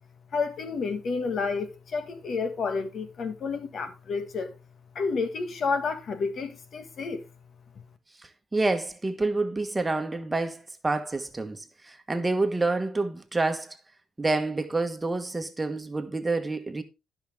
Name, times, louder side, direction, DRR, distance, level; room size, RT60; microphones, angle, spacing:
voice 1, 0.3-4.5 4.9-7.2, left 4 dB, 55° left, 1.6 m, -30 dB
voice 2, 8.5-13.8 14.2-16.8, right 3 dB, 20° right, 1.3 m, -28 dB
12.5 x 5.9 x 3.5 m
cardioid pair, 90°, 0 cm